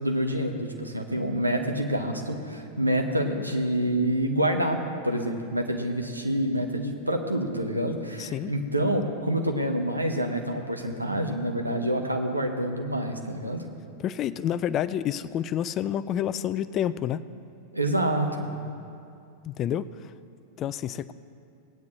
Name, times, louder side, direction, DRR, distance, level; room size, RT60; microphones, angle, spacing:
voice 1, 0.0-4.8 5.0-13.6 17.7-18.5, right 1 dB, 85° right, 4 dB, 1.1 m, -27 dB
voice 2, 8.2-8.5 14.0-17.2 19.4-19.9 20.6-21.1, left 10 dB, 35° left, 16 dB, 0.3 m, -28 dB
18.5 x 9.4 x 3.1 m, 2.5 s
figure-of-eight pair, 90°, 0 cm